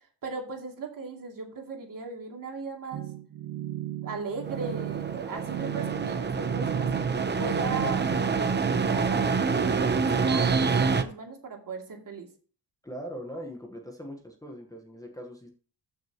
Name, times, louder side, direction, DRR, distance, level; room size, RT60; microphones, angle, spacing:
voice 1, 0.2-3.0 4.0-6.9 7.4-12.3, right 4 dB, 50° right, 1 dB, 2.6 m, -37 dB
sound 1, 2.9-8.2, right 14 dB, 80° right, 1.3 m, -36 dB
sound 2, 4.4-11.0, right 5 dB, 25° right, 0.7 m, -26 dB
voice 2, 12.8-15.5, equal, 10° left, 0 dB, 1.1 m, -40 dB
14.5 x 6.4 x 2.9 m, 0.42 s
wide cardioid pair, 170°, 42 cm